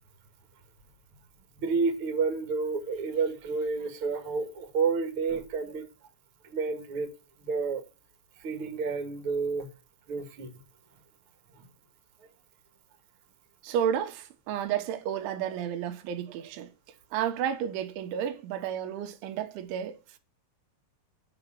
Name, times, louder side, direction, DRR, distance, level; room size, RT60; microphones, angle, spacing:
voice 1, 1.6-5.9 6.4-7.1 7.4-7.8 8.4-9.7 10.1-10.5 11.6-11.7, right 4 dB, 45° right, 1.8 m, -30 dB
voice 2, 13.6-16.7 17.1-20.2, right 9 dB, 85° right, 3.7 m, -32 dB
10.5 x 7.2 x 8.5 m
omnidirectional pair, 5.3 m